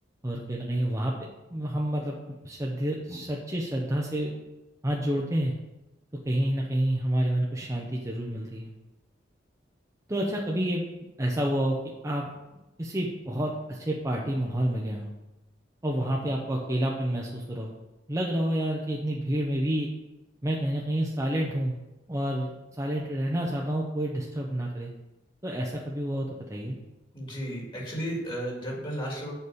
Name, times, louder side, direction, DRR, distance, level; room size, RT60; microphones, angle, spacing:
voice 1, 0.2-4.3 4.8-5.5 6.2-8.7 10.1-10.8 11.2-11.8 12.0-12.3 12.8-15.1 15.8-17.7 18.1-19.9 20.4-21.7 22.1-22.5 22.8-24.9 25.4-26.8, right 1 dB, 15° right, -2 dB, 0.9 m, -29 dB
voice 2, 27.1-29.3, equal, 25° left, -2 dB, 2.3 m, -33 dB
6.8 x 5.3 x 6.9 m, 0.98 s
head